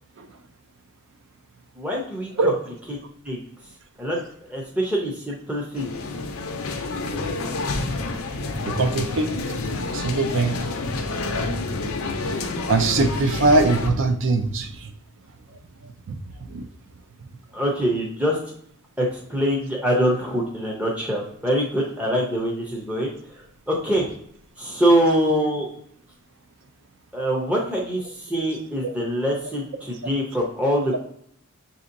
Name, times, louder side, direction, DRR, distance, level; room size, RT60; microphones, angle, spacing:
voice 1, 1.8-2.5 3.2-3.4 4.0-4.2 4.5-5.9 6.6-6.8 17.5-18.4 19.0-23.1 23.7-24.0 24.6-25.7 27.1-31.0, equal, 5° right, -3 dB, 0.6 m, -24 dB
sound 1, 5.8-13.9, left 3 dB, 65° left, 0.5 m, -28 dB
voice 2, 8.6-9.3 9.9-10.6 12.7-14.9 16.1-16.2 16.5-16.6 28.8-28.9, right 3 dB, 60° right, 7 dB, 0.5 m, -21 dB
5.9 x 2.8 x 2.5 m, 0.66 s
head